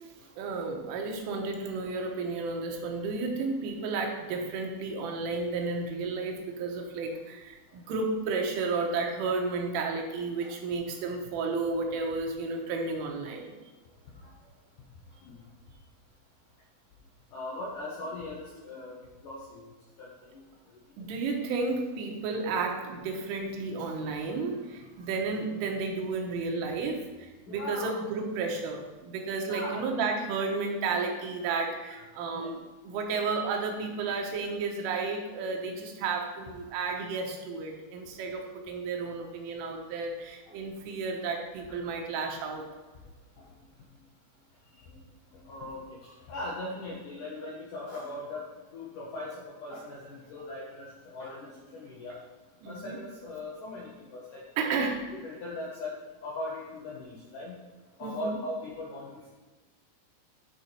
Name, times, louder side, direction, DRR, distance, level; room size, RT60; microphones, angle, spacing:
voice 1, 0.4-13.5 21.0-32.6 32.8-42.6 52.6-53.0 54.6-55.1 58.0-58.4, right 4 dB, 85° right, 2 dB, 3.7 m, -32 dB
voice 2, 17.3-19.0 19.2-19.7 20.0-20.4 27.5-28.0 29.5-29.8 32.3-32.5 41.7-41.8 44.9-45.0 45.3-48.5 48.7-52.2 52.7-54.4 55.2-55.9 56.2-57.6 58.0-59.3, left 2 dB, 75° left, -5 dB, 1.9 m, -39 dB
11.0 x 4.9 x 4.3 m, 1.3 s
omnidirectional pair, 5.5 m